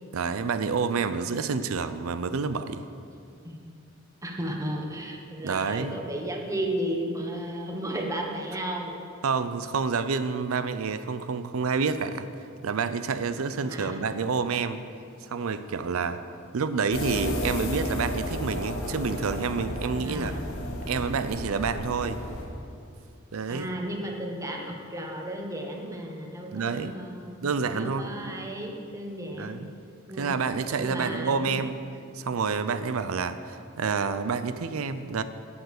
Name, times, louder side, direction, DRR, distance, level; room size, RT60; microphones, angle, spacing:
voice 1, 0.1-2.8 5.4-6.0 9.2-12.3 12.6-14.8 15.2-16.2 16.5-20.3 20.9-22.2 23.3-23.7 26.5-27.0 27.4-28.3 29.4-29.7 30.2-31.8 32.1-35.2, right 5 dB, 90° right, 11 dB, 0.5 m, -28 dB
voice 2, 4.2-9.0 13.6-14.0 20.0-20.4 23.5-29.6 30.1-30.4 30.8-31.6, right 1 dB, 15° right, 1 dB, 1.2 m, -34 dB
sound 1, 16.9-22.5, left 1 dB, 75° left, 1.7 m, -33 dB
10.0 x 7.2 x 6.5 m, 2.5 s
head